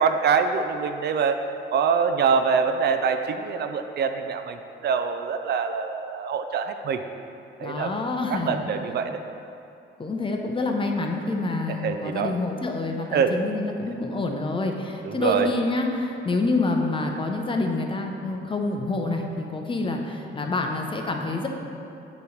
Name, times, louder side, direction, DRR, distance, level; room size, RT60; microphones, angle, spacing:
voice 1, 0.0-1.4 1.7-7.0 7.6-7.9 8.3-9.2 11.7-12.3 13.1-13.4 15.0-15.5, right 6 dB, 55° right, 8 dB, 0.4 m, -24 dB
voice 2, 7.6-8.6 10.0-21.5, left 2 dB, 25° left, 2 dB, 0.7 m, -27 dB
8.1 x 3.1 x 5.0 m, 2.7 s
cardioid pair, 90°, 20 cm